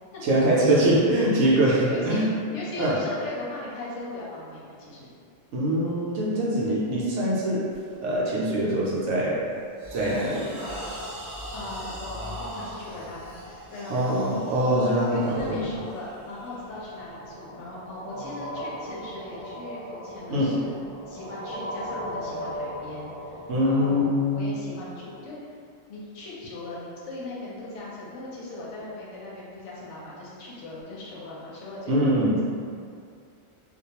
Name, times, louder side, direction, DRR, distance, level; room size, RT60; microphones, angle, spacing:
voice 1, 0.2-2.3 2.8-3.0 5.5-7.7 8.0-9.4 9.9-10.5 13.9-15.7 20.3-20.5 23.5-24.5 31.9-32.4, right 1 dB, 70° right, -6 dB, 0.8 m, -23 dB
voice 2, 1.9-2.2 2.5-5.1 11.5-13.3 13.7-14.1 15.1-20.7 21.1-25.4 25.9-32.4, left 2 dB, 70° left, -6 dB, 0.8 m, -38 dB
sound 1, 7.7-8.0 8.4-8.7 9.2-17.3, equal, 20° right, 0.7 m, -40 dB
sound 2, 16.2-23.7, equal, 10° left, 1.1 m, -37 dB
2.3 x 2.2 x 2.8 m, 2.3 s
omnidirectional pair, 1.4 m